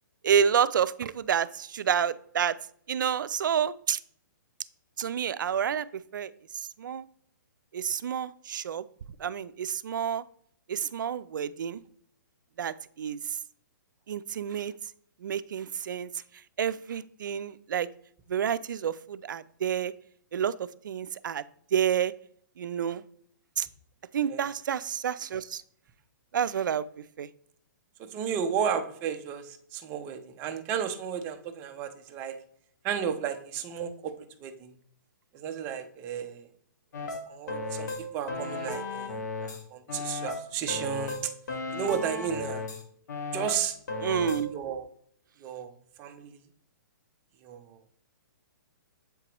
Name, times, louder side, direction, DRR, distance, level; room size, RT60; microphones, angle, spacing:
voice 1, 0.2-2.6 2.9-4.0 5.0-5.9 6.1-7.0 7.7-8.8 9.2-10.2 10.7-11.8 12.6-13.2 14.1-14.7 15.2-16.1 16.6-17.9 18.3-19.9 20.3-21.4 21.7-22.1 22.6-23.0 23.6-23.7 24.1-25.6 26.3-26.8 27.2-27.3 44.0-44.5, right 8 dB, 80° right, 15 dB, 0.4 m, -29 dB
voice 2, 28.0-32.3 32.8-34.1 34.4-34.7 35.3-36.5 37.0-41.3 41.7-42.6 43.3-43.8 44.5-44.9 45.4-45.7 46.0-46.4 47.4-47.8, right 8 dB, 20° right, 6 dB, 0.5 m, -33 dB
sound 1, 36.9-39.6 39.9-42.8 43.1-44.5, left 2 dB, 60° left, 1.4 m, -35 dB
7.7 x 4.5 x 2.9 m, 0.62 s
hypercardioid pair, 165°, 11 cm